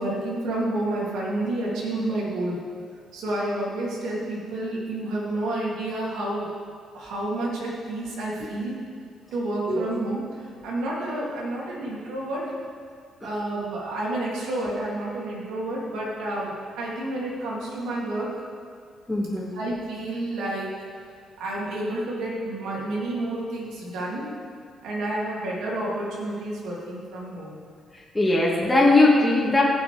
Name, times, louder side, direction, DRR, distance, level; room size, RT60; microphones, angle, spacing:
voice 1, 0.0-2.6 3.1-6.5 6.9-8.8 9.3-10.2 10.6-12.5 13.2-18.3 19.5-20.7 21.4-24.3 24.8-27.6, right 1 dB, 85° right, -5 dB, 3.0 m, -29 dB
voice 2, 19.1-19.5 28.1-29.6, left 2 dB, 15° left, -4 dB, 1.9 m, -19 dB
17.0 x 6.0 x 5.1 m, 2.2 s
cardioid pair, 90°, 0 cm